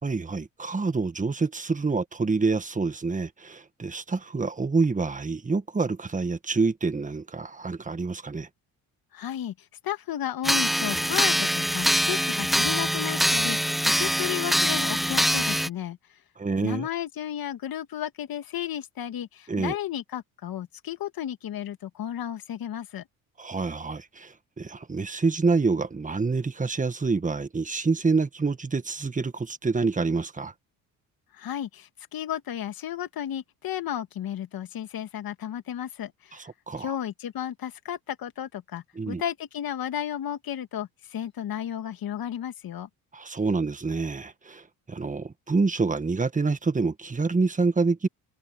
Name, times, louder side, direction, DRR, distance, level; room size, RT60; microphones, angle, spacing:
voice 1, 0.0-8.5 16.4-16.9 19.5-19.8 23.4-30.5 36.3-36.9 38.9-39.2 43.1-48.1, right 4 dB, 20° right, 1.6 m, -27 dB
voice 2, 9.1-9.5 9.8-16.0 16.6-23.0 31.3-36.5 36.8-42.9, left 10 dB, 60° left, 2.2 m, -33 dB
sound 1, 10.4-15.7, equal, ahead, 0.8 m, -24 dB
cardioid pair, 90°, 39 cm